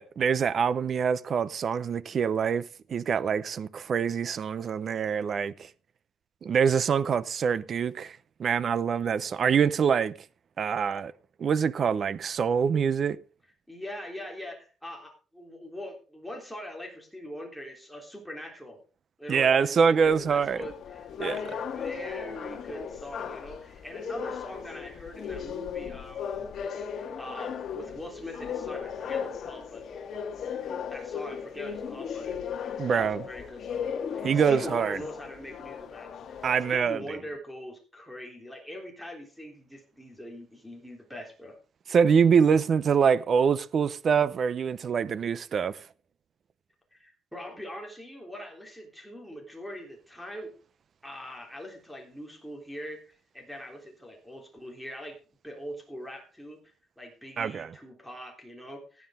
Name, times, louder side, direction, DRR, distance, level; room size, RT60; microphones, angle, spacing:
voice 1, 0.0-5.7 6.4-10.1 10.6-11.1 11.4-13.2 19.3-20.6 21.2-21.4 32.8-33.2 34.2-35.0 36.4-37.0 41.9-45.9 57.4-57.7, right 6 dB, 40° right, 0.6 m, -25 dB
voice 2, 13.7-18.8 19.2-26.5 27.0-29.9 30.8-36.5 36.7-41.6 46.9-50.5 51.0-55.2 55.4-59.1, left 1 dB, ahead, 3.5 m, -42 dB
sound 1, 20.0-36.8, left 7 dB, 50° left, 1.9 m, -37 dB
16.0 x 9.5 x 3.7 m
cardioid pair, 145°, 0 cm